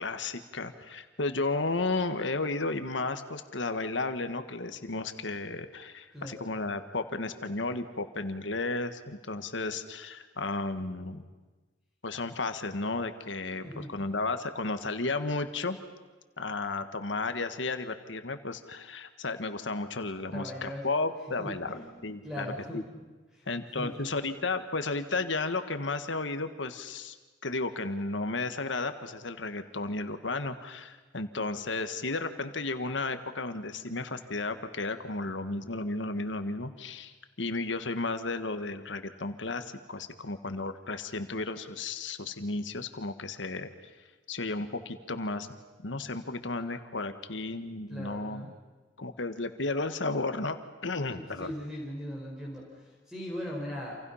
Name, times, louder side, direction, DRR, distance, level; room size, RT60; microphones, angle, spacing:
voice 1, 0.0-11.2 12.0-15.8 16.4-21.7 22.0-22.8 23.5-27.1 27.4-43.7 44.3-45.5 45.8-48.5 49.0-50.6 50.8-51.5, left 3 dB, 90° left, 9 dB, 1.5 m, -33 dB
voice 2, 20.3-20.9 21.4-21.8 22.2-22.8 23.3-24.1 47.9-48.5 51.1-54.0, equal, 5° right, -3 dB, 4.6 m, -39 dB
29.0 x 28.0 x 5.7 m, 1.3 s
head